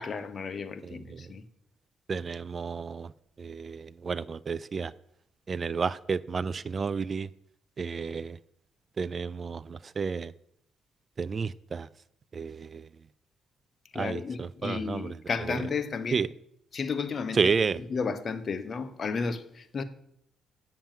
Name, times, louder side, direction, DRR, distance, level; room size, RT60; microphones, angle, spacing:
voice 1, 0.0-1.4 13.9-16.2 16.7-17.4 17.9-19.8, left 5 dB, 45° left, 1.0 m, -33 dB
voice 2, 0.8-1.3 2.1-3.1 3.4-4.9 5.5-7.3 7.8-8.4 9.0-10.3 11.2-11.9 12.3-12.9 13.9-15.6 16.1-16.3 17.3-17.8, right 5 dB, 40° right, 0.3 m, -31 dB
8.8 x 7.1 x 7.5 m
cardioid pair, 90°, 0 cm